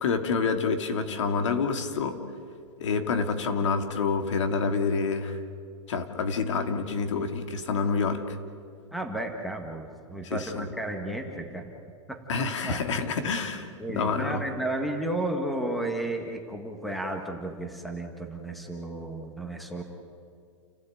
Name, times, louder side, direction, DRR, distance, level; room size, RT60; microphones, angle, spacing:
voice 1, 0.0-2.2 2.8-5.4 5.9-8.4 10.2-10.7 12.3-14.4, left 5 dB, 75° left, 7 dB, 2.6 m, -28 dB
voice 2, 8.9-11.7 12.1-12.2 12.6-12.8 13.8-19.8, right 1 dB, ahead, 4 dB, 1.6 m, -33 dB
29.5 x 16.0 x 9.1 m, 2.3 s
supercardioid pair, 170°, 15 cm